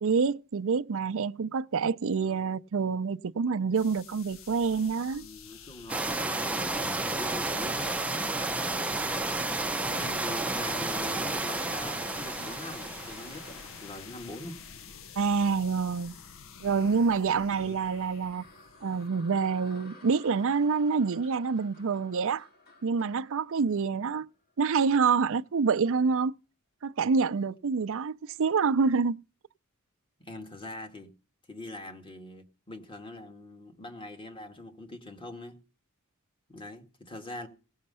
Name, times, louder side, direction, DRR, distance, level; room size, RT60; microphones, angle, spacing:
voice 1, 0.0-5.3 15.2-16.1 16.6-18.4 18.8-22.5 22.8-24.3 24.6-26.3 26.8-29.2, right 5 dB, 65° right, 0.5 m, -27 dB
voice 2, 2.1-2.6 5.2-8.0 9.0-9.4 9.9-14.6 17.5-17.7 30.2-31.1 31.5-35.6 36.5-37.5, left 1 dB, 25° left, 2.1 m, -43 dB
sound 1, 3.7-19.1, left 6 dB, 65° left, 0.7 m, -49 dB
sound 2, 5.9-13.9, right 2 dB, 5° right, 0.7 m, -31 dB
sound 3, 17.5-24.7, left 2 dB, 45° left, 2.2 m, -55 dB
18.0 x 6.4 x 5.5 m
head